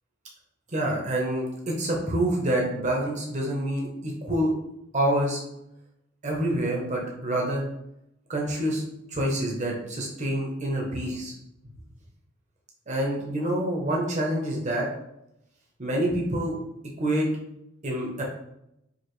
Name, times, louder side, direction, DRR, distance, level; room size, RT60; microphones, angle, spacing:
voice 1, 0.7-4.5 4.9-5.4 6.2-7.6 8.3-8.8 9.1-11.3 12.9-14.9 15.8-16.5 17.0-17.3 17.8-18.2, right 1 dB, 35° right, -1 dB, 0.8 m, -27 dB
4.8 x 2.6 x 3.1 m, 0.82 s
head